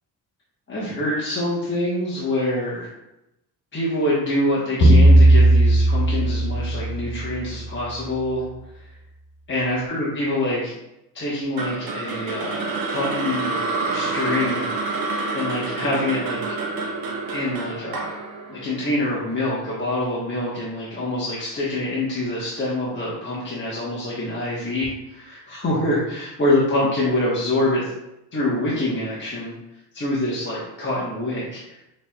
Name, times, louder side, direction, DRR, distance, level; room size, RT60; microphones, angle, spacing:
voice 1, 0.7-2.9 3.7-8.4 8.7-8.8 9.5-10.7 11.1-13.6 13.9-16.4 17.3-18.2 18.5-27.9 28.3-29.6 29.9-31.8, left 1 dB, 30° left, -7 dB, 1.2 m, -25 dB
sound 1, 4.8-7.5, right 1 dB, 65° left, 1.5 m, -15 dB
sound 2, 11.6-19.8, right 3 dB, 60° right, 0.8 m, -28 dB
6.2 x 3.2 x 2.4 m, 0.88 s
cardioid pair, 100°, 40 cm